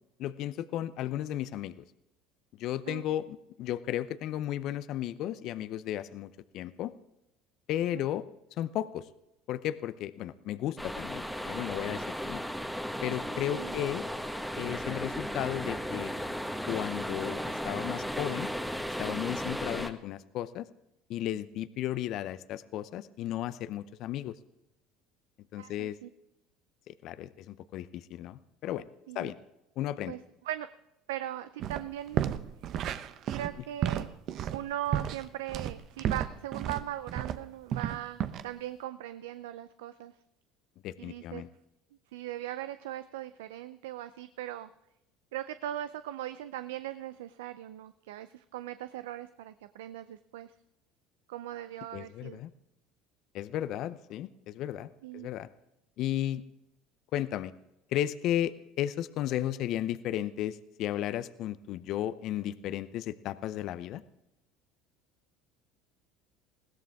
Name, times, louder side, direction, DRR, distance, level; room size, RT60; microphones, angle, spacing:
voice 1, 0.2-1.8 2.6-6.9 7.7-8.3 8.6-9.1 9.5-12.4 13.0-14.1 14.6-16.1 16.7-18.5 19.0-20.7 21.1-24.3 25.5-26.0 26.9-28.9 29.1-29.4 29.8-30.1 40.8-41.5 51.9-52.5 53.3-54.9 55.1-55.5 56.0-56.4 57.1-57.5 57.9-64.0, left 12 dB, 60° left, 15 dB, 0.7 m, -34 dB
sound 1, 10.8-19.9, equal, ahead, 1.5 m, -35 dB
voice 2, 25.6-26.1 29.1-29.3 30.1-30.2 30.5-30.7 31.1-32.3 33.3-34.1 34.5-40.1 41.0-41.4 42.1-44.7 45.3-50.5 51.3-52.4 55.0-55.3, right 12 dB, 80° right, 12 dB, 0.5 m, -39 dB
sound 2, 31.6-31.8 32.1-37.4 37.7-38.4, right 10 dB, 55° right, 0.8 m, -32 dB
20.5 x 16.5 x 3.6 m, 0.88 s
hypercardioid pair, 75°, 0 cm